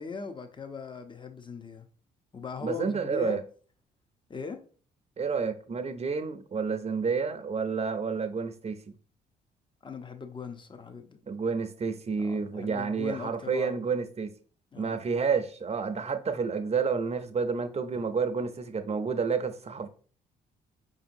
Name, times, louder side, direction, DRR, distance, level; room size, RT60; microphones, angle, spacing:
voice 1, 0.0-1.9 2.3-3.4 4.3-4.6 9.8-11.2 12.2-13.9 14.7-15.1, left 5 dB, 25° left, 0.6 m, -40 dB
voice 2, 2.6-3.4 5.2-8.8 11.3-14.3 14.8-19.9, right 5 dB, 30° right, 0.6 m, -30 dB
5.1 x 2.6 x 2.6 m
hypercardioid pair, 50°, 20 cm